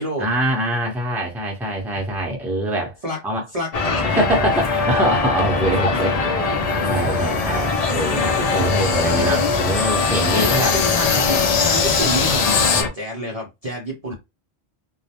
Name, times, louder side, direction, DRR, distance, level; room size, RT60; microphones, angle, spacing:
voice 1, 0.2-3.0 3.2-3.4 4.0-10.7 14.1-14.2, right 1 dB, ahead, 0.6 m, -24 dB
voice 2, 3.5-4.0 5.6-5.7 8.5-8.7 10.3-14.1, equal, 40° right, 0.6 m, -28 dB
sound 1, 3.7-12.9, left 4 dB, 50° left, 0.5 m, -22 dB
sound 2, 6.7-12.8, left 6 dB, 85° left, 0.9 m, -25 dB
2.3 x 2.0 x 2.8 m
omnidirectional pair, 1.2 m